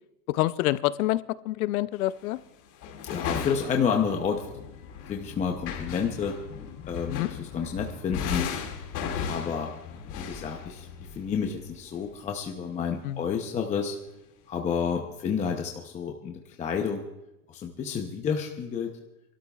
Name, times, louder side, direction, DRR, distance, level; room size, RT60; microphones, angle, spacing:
voice 1, 0.3-2.4 7.1-7.3 13.0-13.3, left 16 dB, 70° left, 16 dB, 0.7 m, -27 dB
sound 1, 2.2-2.4 2.8-11.9, left 7 dB, 40° left, 2.3 m, -36 dB
voice 2, 3.0-4.5 5.1-6.4 6.9-7.3 7.5-8.5 9.1-9.7 10.1-13.9 14.5-17.0 17.5-18.9, left 6 dB, 15° left, 2 dB, 0.7 m, -30 dB
29.0 x 12.5 x 2.4 m, 0.91 s
supercardioid pair, 150°, 45 cm